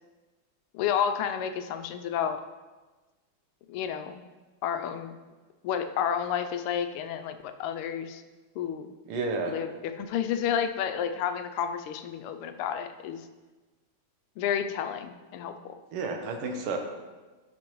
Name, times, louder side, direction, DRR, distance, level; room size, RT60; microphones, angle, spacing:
voice 1, 0.7-2.4 3.7-4.2 4.6-5.2 5.6-8.2 8.6-8.9 9.5-13.2 14.4-15.7, left 8 dB, 90° left, 8 dB, 1.5 m, -31 dB
voice 2, 9.1-9.6 15.9-16.8, right 4 dB, 85° right, 3 dB, 1.9 m, -31 dB
12.5 x 5.2 x 3.0 m, 1.2 s
omnidirectional pair, 2.4 m